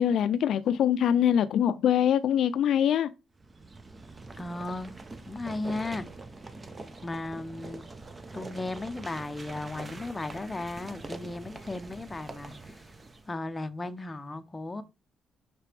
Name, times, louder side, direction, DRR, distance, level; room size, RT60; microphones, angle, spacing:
voice 1, 0.0-3.1, left 9 dB, 70° left, 0.4 m, -23 dB
sound 1, 3.4-13.3, right 3 dB, 25° right, 0.7 m, -44 dB
voice 2, 4.4-4.9 5.3-6.1 7.0-7.9 8.3-12.8 13.3-14.8, left 2 dB, 20° left, 0.7 m, -35 dB
5.8 x 4.8 x 3.4 m
cardioid pair, 105°, 0 cm